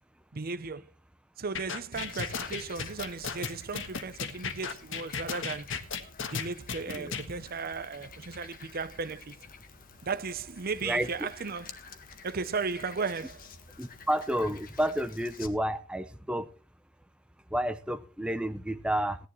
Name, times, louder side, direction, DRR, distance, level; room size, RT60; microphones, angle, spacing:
voice 1, 0.3-0.8 1.4-5.7 6.3-9.4 10.0-11.7 12.2-13.4, right 4 dB, 45° right, 0.7 m, -35 dB
sound 1, 1.5-7.2, left 6 dB, 65° left, 1.5 m, -35 dB
Frog, 1.9-15.5, left 5 dB, 45° left, 1.6 m, -50 dB
voice 2, 6.9-7.2 10.8-11.1 13.8-16.5 17.5-19.2, right 1 dB, 5° right, 0.6 m, -30 dB
18.0 x 11.0 x 3.1 m
head